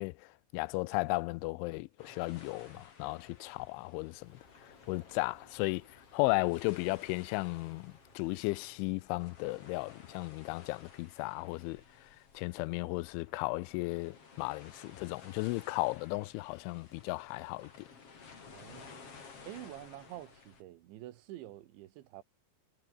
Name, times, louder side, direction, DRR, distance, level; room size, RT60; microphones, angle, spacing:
voice 1, 0.0-4.4 4.9-11.8 12.3-17.7, left 23 dB, 80° left, 2.9 m, -35 dB
sound 1, 2.0-20.6, left 5 dB, 35° left, 3.7 m, -56 dB
sound 2, 4.1-9.1, left 2 dB, 10° left, 3.5 m, -66 dB
voice 2, 18.5-19.2 19.4-22.2, right 14 dB, 75° right, 3.6 m, -48 dB
omnidirectional pair, 5.7 m